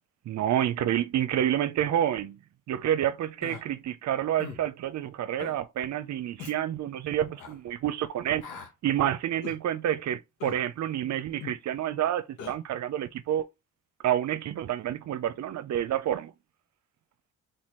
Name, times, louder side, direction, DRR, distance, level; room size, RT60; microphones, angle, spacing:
voice 1, 0.3-2.4 2.7-8.5 8.8-13.5 14.0-16.3, right 11 dB, 65° right, 0.7 m, -28 dB
Human voice, 3.4-3.6 4.4-4.6 5.4-5.6 6.4-6.6 7.4-7.5 8.4-8.7 9.4-9.6 10.4-10.6 11.4-11.6 12.4-12.6, left 7 dB, 85° left, 1.3 m, -40 dB
4.2 x 4.0 x 3.1 m
cardioid pair, 90°, 30 cm